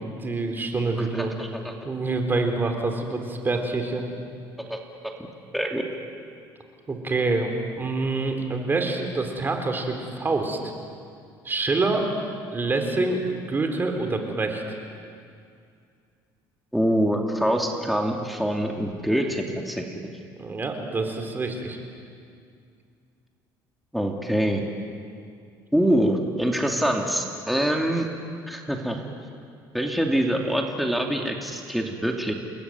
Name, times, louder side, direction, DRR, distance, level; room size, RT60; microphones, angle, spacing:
voice 1, 0.0-1.3 1.8-4.0 6.9-10.7 11.4-12.1 12.5-14.6 20.4-21.8, right 3 dB, 25° right, 4 dB, 4.1 m, -26 dB
voice 2, 1.0-1.7 4.7-4.8 5.5-5.9 16.7-19.9 23.9-24.6 25.7-28.1 28.5-29.0 29.7-32.3, equal, ahead, 1 dB, 2.6 m, -25 dB
29.5 x 20.5 x 9.5 m, 2.3 s
cardioid pair, 120°, 9 cm